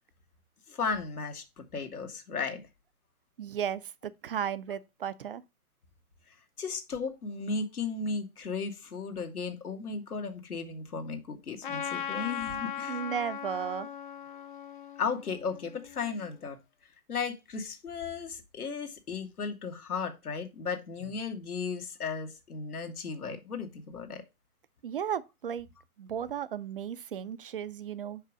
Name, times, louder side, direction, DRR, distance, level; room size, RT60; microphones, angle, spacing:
voice 1, 0.7-2.6 6.6-13.0 15.0-16.6 17.1-24.2, left 5 dB, 80° left, 1.8 m, -35 dB
voice 2, 3.4-5.4 12.9-13.9 24.8-25.7 26.0-28.2, right 9 dB, 40° right, 0.4 m, -35 dB
Trumpet, 11.6-16.3, left 8 dB, 35° left, 0.5 m, -38 dB
5.5 x 4.9 x 5.1 m
hypercardioid pair, 135°, 44 cm